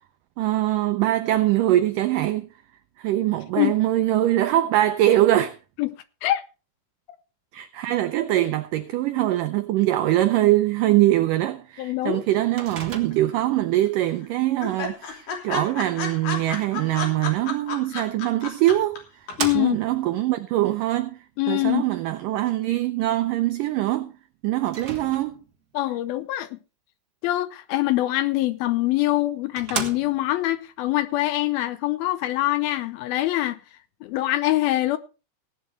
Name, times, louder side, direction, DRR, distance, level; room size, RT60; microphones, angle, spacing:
voice 1, 0.4-2.5 3.0-5.6 7.5-19.3 19.5-24.1 24.4-25.4, right 14 dB, 90° right, 1.9 m, -23 dB
voice 2, 11.8-12.2 19.4-19.8 21.4-21.8 25.7-26.6 27.2-33.6 34.0-35.0, left 16 dB, 75° left, 2.4 m, -24 dB
Microwave oven, 12.6-13.5 17.8-17.9 18.7-20.0 24.7-25.6 28.7-28.8 29.2-29.3 29.6-30.4, right 6 dB, 70° right, 0.9 m, -34 dB
sound 1, 12.9-13.6 13.9-14.0 14.2-14.3 14.6-19.0 19.3-19.4, left 5 dB, 55° left, 4.5 m, -31 dB
17.0 x 11.0 x 3.3 m
omnidirectional pair, 4.7 m